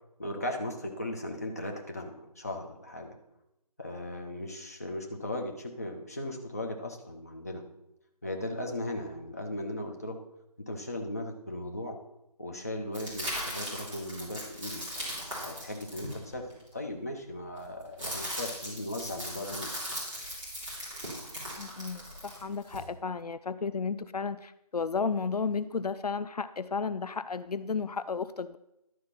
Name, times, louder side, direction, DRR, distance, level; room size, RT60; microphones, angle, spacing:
voice 1, 0.2-3.2 3.8-7.6 8.2-10.2 10.6-12.0 12.4-14.8 15.4-16.4 16.7-19.7, left 1 dB, 25° left, 2 dB, 0.8 m, -37 dB
sound 1, 12.9-16.7 17.6-22.8, equal, 10° right, 3.2 m, -38 dB
voice 2, 21.6-28.6, left 5 dB, 75° left, 14 dB, 0.5 m, -33 dB
11.5 x 4.7 x 5.8 m, 0.85 s
figure-of-eight pair, 175°, 20 cm